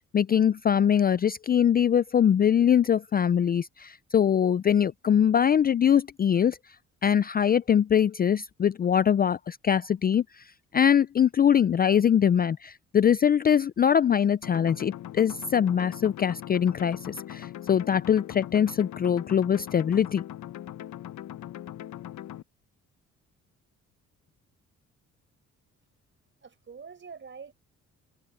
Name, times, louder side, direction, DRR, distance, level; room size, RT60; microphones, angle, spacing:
voice 1, 0.1-6.6 7.0-10.4 10.7-20.2, left 8 dB, 30° left, 0.4 m, -23 dB
sound 1, 14.4-22.4, left 12 dB, 70° left, 1.1 m, -40 dB
voice 2, 26.4-27.5, right 5 dB, 40° right, 5.4 m, -45 dB
cardioid pair, 90°, 30 cm